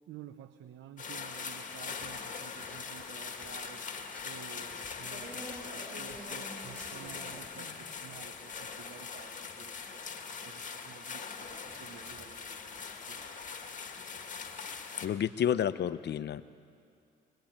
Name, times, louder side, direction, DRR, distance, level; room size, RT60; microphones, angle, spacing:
voice 1, 0.1-3.9 4.2-11.2 11.5-13.3, right 9 dB, 75° right, 10 dB, 0.9 m, -52 dB
sound 1, 1.0-15.1, left 5 dB, 40° left, 1.9 m, -42 dB
sound 2, 2.0-14.0, left 2 dB, 5° left, 4.7 m, -60 dB
sound 3, 5.0-7.8 8.8-8.9 11.7-12.4 12.7-13.5, right 1 dB, 55° right, 5.5 m, -48 dB
voice 2, 15.0-16.4, left 9 dB, 60° left, 13 dB, 0.8 m, -30 dB
24.5 x 20.5 x 8.8 m, 2.4 s
cardioid pair, 90°, 20 cm